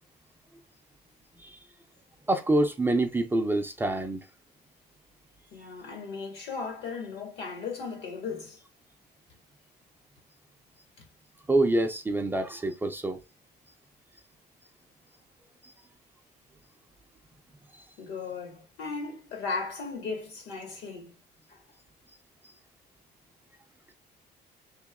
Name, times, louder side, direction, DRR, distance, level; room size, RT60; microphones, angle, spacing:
voice 1, 2.3-4.2 11.5-13.2, right 2 dB, 10° right, 0.4 m, -26 dB
voice 2, 5.5-8.6 11.0-11.1 18.0-21.1 21.5-21.6, left 4 dB, 75° left, 1.8 m, -36 dB
3.0 x 3.0 x 3.5 m
cardioid pair, 165°, 17 cm